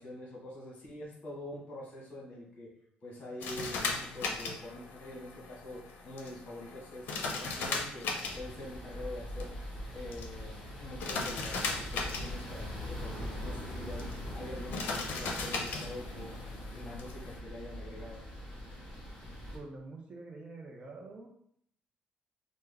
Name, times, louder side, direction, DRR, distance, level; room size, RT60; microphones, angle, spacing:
voice 1, 0.0-2.7 3.0-8.1 8.3-9.5 9.9-18.2, left 1 dB, 50° left, -3 dB, 1.3 m, -45 dB
sound 1, 3.4-17.4, left 4 dB, 75° left, 0.6 m, -39 dB
sound 2, 8.2-19.6, equal, 25° left, 1.4 m, -42 dB
voice 2, 19.5-21.3, right 3 dB, 35° right, 1 dB, 0.5 m, -46 dB
3.4 x 2.1 x 3.4 m, 0.69 s
cardioid pair, 130°, 3 cm